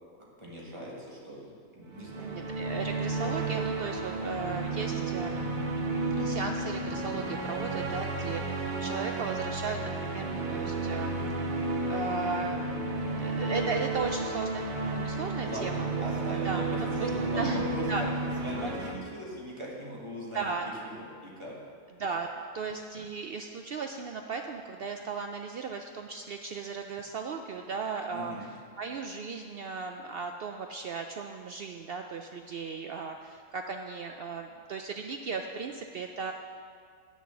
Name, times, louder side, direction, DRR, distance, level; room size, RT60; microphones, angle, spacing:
voice 1, 0.2-2.4 15.4-18.1 18.4-20.4 20.8-21.5 28.1-28.5, right 1 dB, 20° right, -5 dB, 1.7 m, -40 dB
sound 1, 1.9-18.9, right 2 dB, 45° right, 0.8 m, -32 dB
voice 2, 2.1-5.5 6.2-11.2 11.9-12.7 13.2-16.0 16.4-17.1 17.4-18.0 18.5-18.7 20.3-20.7 22.0-28.5 28.8-36.3, right 5 dB, 75° right, 4 dB, 0.5 m, -36 dB
8.4 x 6.4 x 7.0 m, 2.1 s
omnidirectional pair, 1.5 m